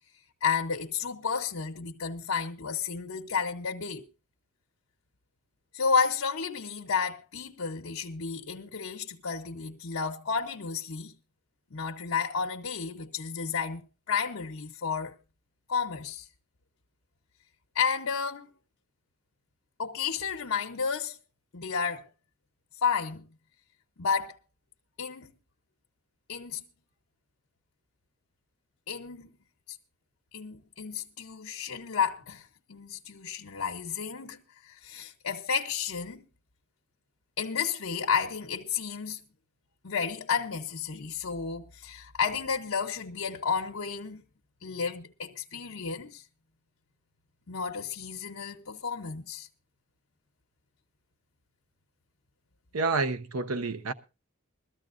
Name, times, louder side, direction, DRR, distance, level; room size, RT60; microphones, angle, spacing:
voice 1, 0.4-4.0 5.7-11.2 11.7-15.2 15.7-16.3 17.7-18.5 19.8-21.2 21.5-22.1 22.8-23.3 24.0-24.4 25.0-25.3 26.3-26.6 28.9-29.3 29.7-29.8 30.3-36.3 37.4-39.3 39.8-44.2 44.6-46.2 47.5-49.5, left 6 dB, 65° left, 0.8 m, -32 dB
voice 2, 52.7-53.9, right 3 dB, 85° right, 0.8 m, -29 dB
21.5 x 13.5 x 2.5 m
head